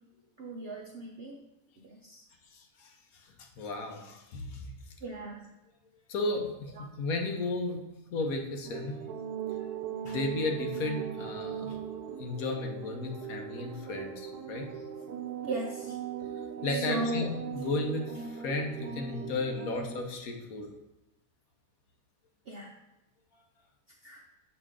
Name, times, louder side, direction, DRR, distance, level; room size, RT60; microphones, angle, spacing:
voice 1, 0.4-1.4 1.8-2.2 5.0-5.4 15.4-16.0 16.7-17.3 22.5-22.7 24.0-24.2, right 2 dB, 60° right, 0 dB, 0.6 m, -36 dB
voice 2, 2.5-4.7 6.1-7.8 8.1-9.0 10.0-11.8 12.2-14.7 16.6-20.7, left 3 dB, 65° left, 3 dB, 1.3 m, -34 dB
sound 1, 8.6-20.0, right 8 dB, 80° right, 1.2 m, -39 dB
6.9 x 4.9 x 3.7 m, 0.95 s
omnidirectional pair, 1.7 m